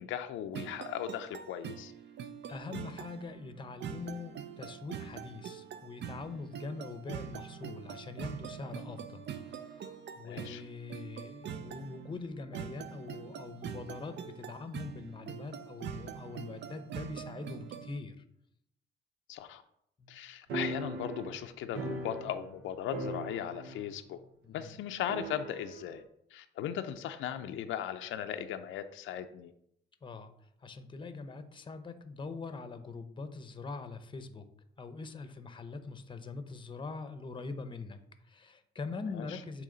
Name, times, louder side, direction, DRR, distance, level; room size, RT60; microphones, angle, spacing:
voice 1, 0.0-1.9 10.2-10.6 15.8-15.9 19.3-19.6 20.1-24.2 24.5-26.0 26.3-29.5 39.1-39.4, left 10 dB, 85° left, 7 dB, 0.5 m, -38 dB
sound 1, 0.5-18.0, right 8 dB, 60° right, 0.5 m, -44 dB
voice 2, 2.5-18.2 20.0-20.2 24.4-24.7 30.0-30.3 30.6-34.5 34.8-39.6, left 4 dB, 25° left, 9 dB, 0.7 m, -43 dB
sound 2, 20.5-22.6 22.9-23.9 24.2-24.3 25.1-25.9, right 2 dB, 90° right, 1.0 m, -39 dB
8.5 x 3.2 x 3.8 m, 0.74 s
cardioid pair, 90°, 20 cm